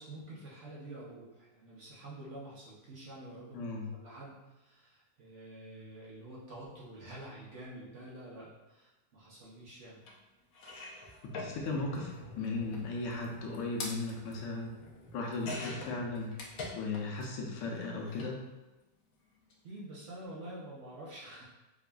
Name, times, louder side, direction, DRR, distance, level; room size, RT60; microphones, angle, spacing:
voice 1, 0.0-3.6 3.9-10.0 19.6-21.4, right 1 dB, 55° right, -7 dB, 0.9 m, -48 dB
voice 2, 3.5-3.9 11.2-14.7 15.1-16.4 16.7-18.4, left 3 dB, 90° left, -1 dB, 1.3 m, -36 dB
sound 1, 10.1-10.2 10.5-17.3 17.5-18.3 19.4-19.5 19.8-19.9, left 2 dB, 65° left, 1.0 m, -45 dB
4.9 x 2.4 x 2.2 m, 1.1 s
omnidirectional pair, 1.9 m